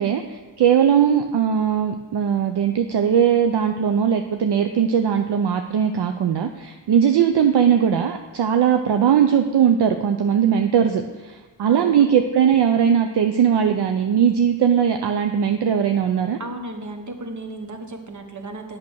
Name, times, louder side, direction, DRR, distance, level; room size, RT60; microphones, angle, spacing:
voice 1, 0.0-16.4, right 8 dB, 65° right, 6 dB, 0.6 m, -19 dB
voice 2, 11.7-12.1 16.4-18.8, right 2 dB, 40° right, 5 dB, 1.3 m, -34 dB
8.3 x 6.3 x 6.3 m, 1.2 s
cardioid pair, 90°, 44 cm